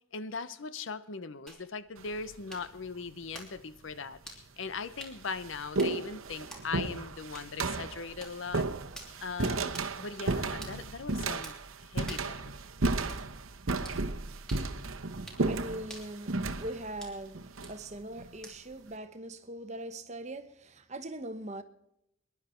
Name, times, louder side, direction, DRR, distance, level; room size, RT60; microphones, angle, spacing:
voice 1, 0.1-8.7 9.2-9.7 10.0-11.5 11.8-12.5, left 4 dB, 65° left, 0.7 m, -39 dB
sound 1, 1.5-18.9, right 1 dB, 5° left, 3.0 m, -53 dB
sound 2, 2.0-2.4 3.4-3.5 4.3-4.4 4.8-18.3, right 3 dB, 80° right, 1.0 m, -34 dB
voice 2, 15.4-17.4 17.7-21.6, right 1 dB, 35° right, 1.0 m, -41 dB
23.5 x 11.0 x 4.4 m
head